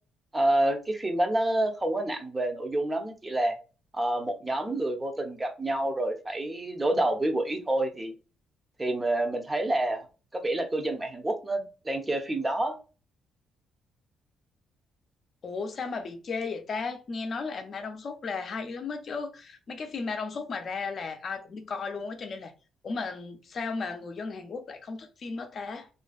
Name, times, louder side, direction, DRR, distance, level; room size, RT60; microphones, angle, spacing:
voice 1, 0.3-3.5 3.9-8.1 8.8-10.1 10.3-12.7, right 1 dB, 20° right, 0.6 m, -28 dB
voice 2, 15.4-22.5 22.8-25.9, left 4 dB, 50° left, 0.5 m, -35 dB
2.5 x 2.2 x 2.3 m
cardioid pair, 90°, 0 cm